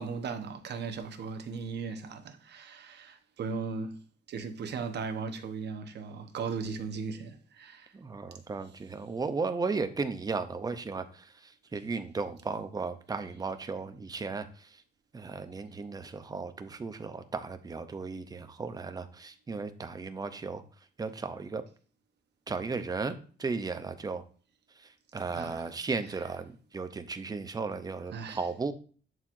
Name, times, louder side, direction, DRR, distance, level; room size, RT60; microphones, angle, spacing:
voice 1, 0.0-4.0 4.3-7.9 25.3-25.7 26.0-26.2 28.1-28.5, right 5 dB, 60° right, 1.0 m, -37 dB
voice 2, 7.9-11.0 11.7-14.5 15.1-20.6 21.0-21.6 22.5-24.2 25.1-28.7, right 4 dB, 20° right, 0.6 m, -35 dB
11.0 x 4.6 x 2.6 m
wide cardioid pair, 175°, 19 cm